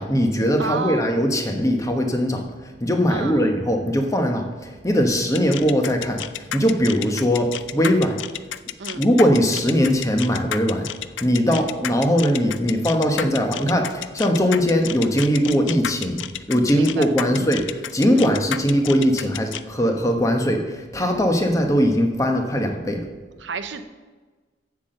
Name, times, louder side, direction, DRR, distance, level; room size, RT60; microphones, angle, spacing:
voice 1, 0.0-4.5 4.8-8.2 8.9-10.9 11.2-16.2 16.5-23.0, equal, 20° left, 4 dB, 1.1 m, -20 dB
voice 2, 0.6-1.3 3.1-3.5 8.8-9.0 11.5-11.7 16.7-17.4 18.1-18.4 23.4-23.8, right 4 dB, 80° right, 10 dB, 0.8 m, -32 dB
sound 1, 5.3-19.6, left 11 dB, 90° left, 0.4 m, -31 dB
8.1 x 7.8 x 6.6 m, 1.3 s
head